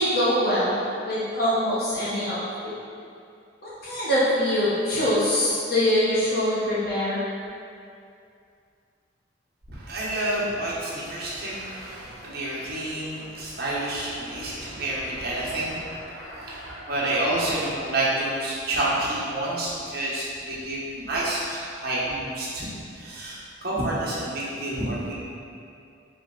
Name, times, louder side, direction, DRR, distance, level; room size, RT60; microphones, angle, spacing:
voice 1, 0.0-2.7 3.6-7.2, equal, 50° left, -9 dB, 0.9 m, -24 dB
voice 2, 9.7-25.1, right 1 dB, 55° right, -7 dB, 1.0 m, -29 dB
4.4 x 3.1 x 3.7 m, 2.4 s
head